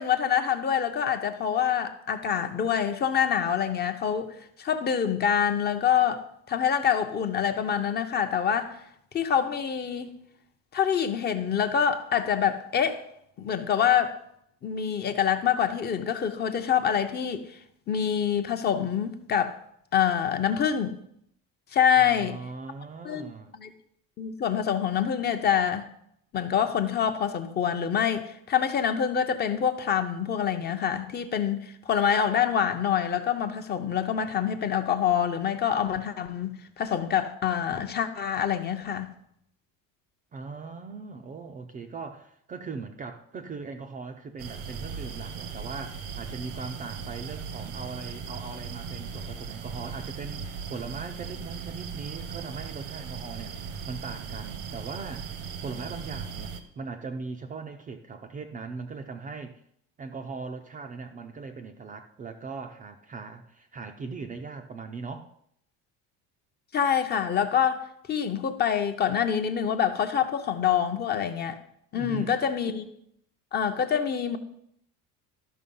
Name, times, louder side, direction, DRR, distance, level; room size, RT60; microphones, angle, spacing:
voice 1, 0.0-8.8 9.1-10.1 10.7-13.0 13.4-14.2 14.6-17.5 17.9-19.6 19.9-21.0 21.7-22.4 23.0-23.7 24.2-25.8 26.3-39.1 66.7-71.6 71.9-72.9 73.5-74.4, left 8 dB, 30° left, 0.6 m, -26 dB
voice 2, 22.0-23.5 40.3-59.6 60.0-65.3 71.9-72.4, right 4 dB, 25° right, 0.4 m, -39 dB
sound 1, 44.4-56.6, right 6 dB, 90° right, 1.3 m, -38 dB
13.0 x 5.9 x 5.4 m
cardioid pair, 175°, 36 cm